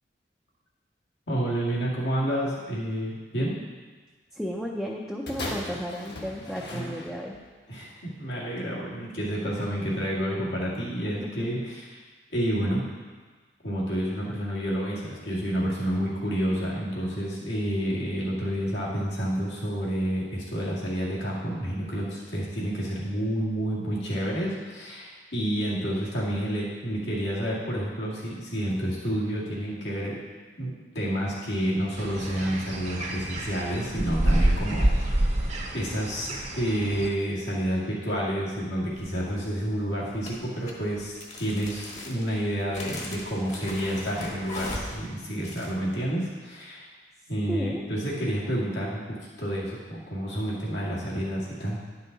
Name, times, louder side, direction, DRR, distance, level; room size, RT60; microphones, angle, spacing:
voice 1, 1.3-3.5 6.7-6.9 7.7-12.0 12.3-12.8 13.6-30.2 30.6-35.4 35.7-46.9 47.3-51.8, equal, 85° left, -6 dB, 2.2 m, -29 dB
voice 2, 4.3-7.3 11.2-11.5 47.5-47.8, equal, 5° left, -3 dB, 0.6 m, -33 dB
sound 1, 5.3-7.5 8.3-8.4, left 1 dB, 65° left, 1.4 m, -37 dB
sound 2, 32.0-37.1, right 1 dB, 40° right, 0.9 m, -27 dB
sound 3, 38.9-39.4 40.2-45.7, left 1 dB, 40° left, 1.2 m, -39 dB
10.5 x 5.6 x 4.0 m, 1.4 s
head